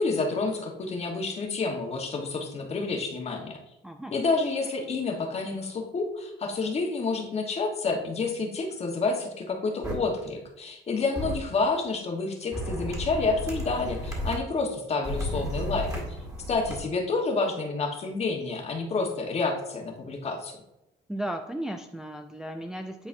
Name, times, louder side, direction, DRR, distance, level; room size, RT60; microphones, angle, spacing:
voice 1, 0.0-3.6 4.1-15.9 16.5-20.6, left 3 dB, 40° left, 3 dB, 1.2 m, -29 dB
voice 2, 3.8-4.2 21.1-23.1, right 1 dB, 5° right, 4 dB, 0.3 m, -35 dB
sound 1, 9.8-9.9 11.2-11.4 12.5-14.4 15.0-16.8, equal, 20° right, 2.0 m, -33 dB
9.7 x 4.0 x 2.6 m, 0.90 s
cardioid pair, 110°, 17 cm